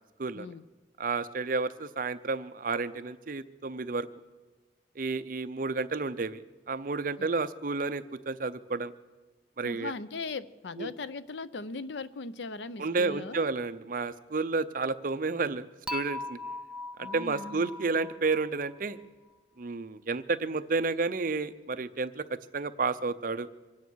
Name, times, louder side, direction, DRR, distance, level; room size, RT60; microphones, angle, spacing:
voice 1, 0.3-0.6 7.2-7.3 9.6-13.5 17.0-17.7, left 3 dB, 75° left, 15 dB, 0.6 m, -39 dB
voice 2, 1.0-4.1 5.0-6.4 6.7-8.9 9.6-9.9 10.8-10.9 12.8-16.4 17.0-19.0 19.6-22.2 22.5-23.5, right 4 dB, 50° right, 12 dB, 0.6 m, -31 dB
Dishes pots and pans / Chink clink, 15.9-19.0, left 3 dB, 5° right, 0.4 m, -40 dB
24.0 x 9.6 x 6.3 m, 1.2 s
head